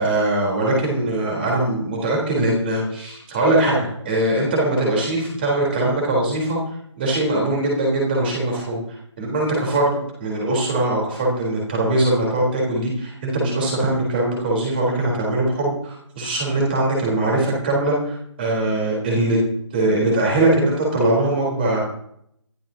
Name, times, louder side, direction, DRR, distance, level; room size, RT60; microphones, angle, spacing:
voice 1, 0.0-6.6 7.0-8.8 9.2-19.4 19.7-21.8, right 2 dB, 20° right, -2 dB, 3.9 m, -21 dB
23.0 x 12.5 x 2.9 m, 0.71 s
hypercardioid pair, 175°, 16 cm